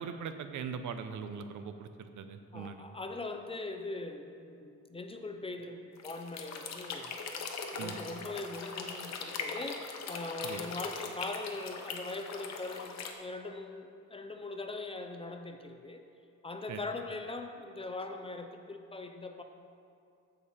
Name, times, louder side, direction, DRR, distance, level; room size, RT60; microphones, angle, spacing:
voice 1, 0.0-2.8 7.8-8.0 10.4-10.6 16.7-16.8, right 6 dB, 75° right, 9 dB, 0.7 m, -41 dB
voice 2, 2.5-7.1 7.7-16.0 16.4-19.4, left 2 dB, 20° left, 5 dB, 0.4 m, -41 dB
sound 1, 6.0-13.1, left 5 dB, 60° left, 0.9 m, -41 dB
14.0 x 5.0 x 4.3 m, 2.5 s
cardioid pair, 155°, 31 cm